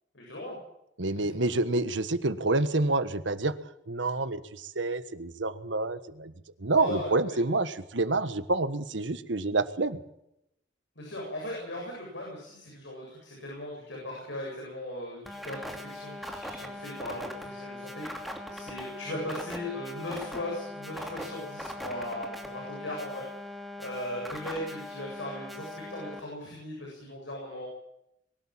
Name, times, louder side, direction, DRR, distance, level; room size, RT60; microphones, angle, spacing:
voice 1, 0.1-0.6 1.2-1.3 6.8-7.1 11.0-23.2 23.8-27.7, left 1 dB, 75° left, -2 dB, 7.8 m, -38 dB
voice 2, 1.0-3.5 3.9-6.3 6.6-10.0, right 2 dB, 80° right, 12 dB, 1.4 m, -28 dB
sound 1, 15.3-26.2, left 1 dB, ahead, 2.9 m, -40 dB
23.0 x 12.5 x 9.0 m, 0.81 s
head